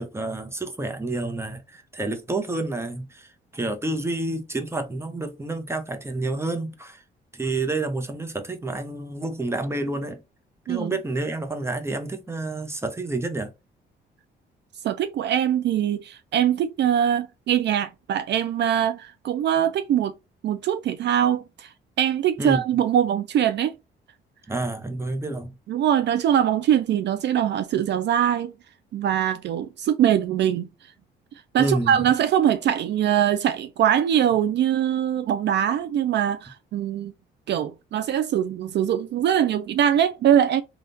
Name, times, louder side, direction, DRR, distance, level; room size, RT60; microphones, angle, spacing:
voice 1, 0.0-3.3 3.5-7.0 7.3-10.2 10.7-13.5 22.4-22.6 24.5-25.5 31.6-32.0, right 2 dB, 15° right, 0.8 m, -29 dB
voice 2, 14.8-20.1 20.4-21.7 22.0-23.7 25.7-28.5 28.9-30.7 31.5-37.1 37.5-40.6, right 10 dB, 60° right, 0.4 m, -22 dB
3.5 x 2.4 x 2.6 m
cardioid pair, 90°, 20 cm